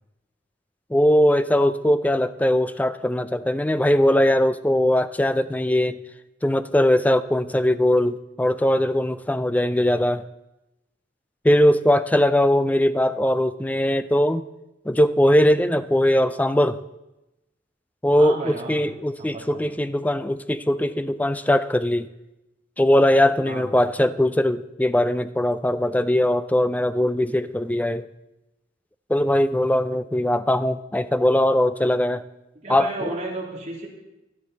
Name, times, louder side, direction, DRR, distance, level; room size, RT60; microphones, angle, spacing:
voice 1, 0.9-6.0 6.4-10.2 11.4-14.4 14.9-16.8 18.0-22.1 22.8-28.0 29.1-32.2 32.7-33.1, left 1 dB, 10° left, 13 dB, 0.4 m, -20 dB
voice 2, 18.2-18.9 19.2-19.7 23.5-23.8 32.6-33.9, right 2 dB, 40° right, -1 dB, 2.8 m, -33 dB
17.0 x 11.5 x 4.0 m, 0.95 s
head